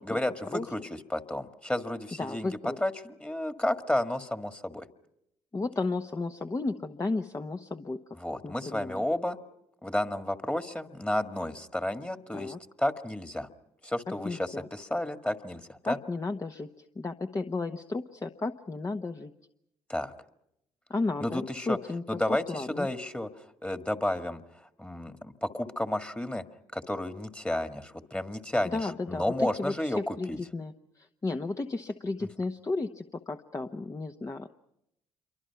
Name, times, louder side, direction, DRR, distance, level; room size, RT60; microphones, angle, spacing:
voice 1, 0.0-4.9 8.2-9.4 9.8-13.5 13.8-16.0 19.9-20.1 21.2-21.8 22.1-26.4 26.7-30.4, left 1 dB, 10° left, 8 dB, 1.8 m, -32 dB
voice 2, 2.2-2.8 5.5-8.0 8.4-9.0 12.3-12.6 14.2-14.7 15.9-19.3 20.9-22.2 22.5-22.9 28.6-34.5, left 3 dB, 30° left, 6 dB, 1.1 m, -33 dB
27.5 x 24.0 x 5.8 m, 0.82 s
hypercardioid pair, 55°, 11 cm